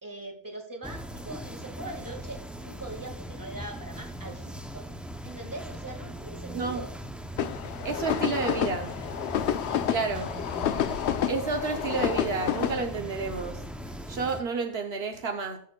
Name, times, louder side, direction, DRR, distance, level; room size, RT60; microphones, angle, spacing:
voice 1, 0.0-4.9 5.2-6.9 9.6-9.9, right 2 dB, 20° right, 4 dB, 1.7 m, -41 dB
sound 1, 0.8-14.4, equal, ahead, 0.4 m, -40 dB
sound 2, 7.4-12.8, left 9 dB, 85° left, 0.9 m, -29 dB
voice 2, 7.8-8.9 9.9-10.4 11.3-13.6 14.1-15.6, right 4 dB, 70° right, 5 dB, 1.1 m, -30 dB
18.5 x 6.6 x 2.3 m, 0.64 s
omnidirectional pair, 1.1 m